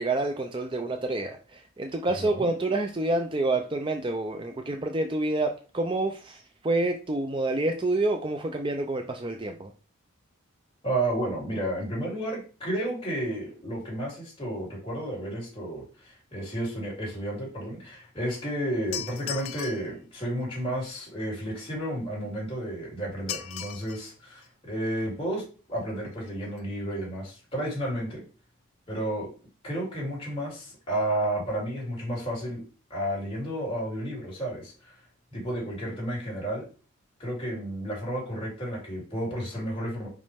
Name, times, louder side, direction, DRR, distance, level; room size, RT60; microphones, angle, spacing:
voice 1, 0.0-9.7, right 2 dB, 25° right, 5 dB, 0.4 m, -28 dB
voice 2, 2.2-2.5 10.8-28.2 28.9-29.3 29.6-32.6 32.9-34.9 35.3-36.6 37.2-40.1, right 1 dB, 25° left, -5 dB, 3.2 m, -32 dB
sound 1, 18.9-19.9 23.3-24.0 24.4-24.5 25.4-25.5 25.8-25.9 26.1-26.3 26.6-26.7, left 11 dB, 70° left, 0.6 m, -37 dB
5.2 x 5.1 x 3.5 m, 0.36 s
head